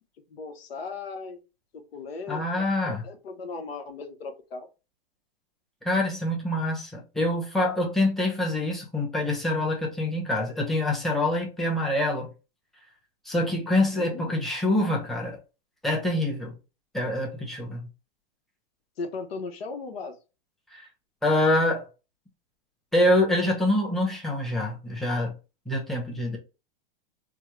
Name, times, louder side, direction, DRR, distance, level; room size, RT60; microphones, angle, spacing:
voice 1, 0.3-1.4 1.7-4.7 13.9-14.4 19.0-20.2, left 4 dB, 85° left, 0.8 m, -37 dB
voice 2, 2.3-3.0 5.8-12.3 13.2-15.4 15.8-16.5 16.9-17.9 20.7-20.9 21.2-21.9 22.9-25.3 25.7-26.4, left 1 dB, ahead, 0.7 m, -25 dB
3.5 x 2.0 x 3.1 m
hypercardioid pair, 130°, 29 cm